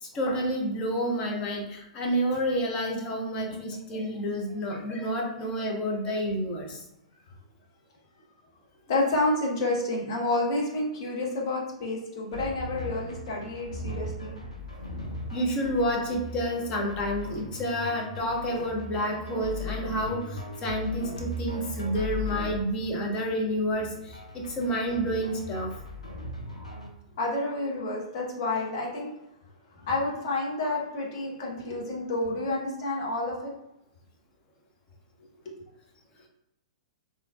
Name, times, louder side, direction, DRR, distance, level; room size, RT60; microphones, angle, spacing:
voice 1, 0.1-6.8 15.3-25.7, equal, 25° left, 0 dB, 0.8 m, -29 dB
voice 2, 8.9-14.3 26.6-26.7 27.2-29.1 29.9-33.5 35.4-35.5, left 2 dB, 45° left, -3 dB, 1.0 m, -29 dB
sound 1, 12.3-26.9, left 1 dB, 85° left, 0.7 m, -38 dB
3.6 x 2.7 x 2.3 m, 0.86 s
figure-of-eight pair, 105°, 4 cm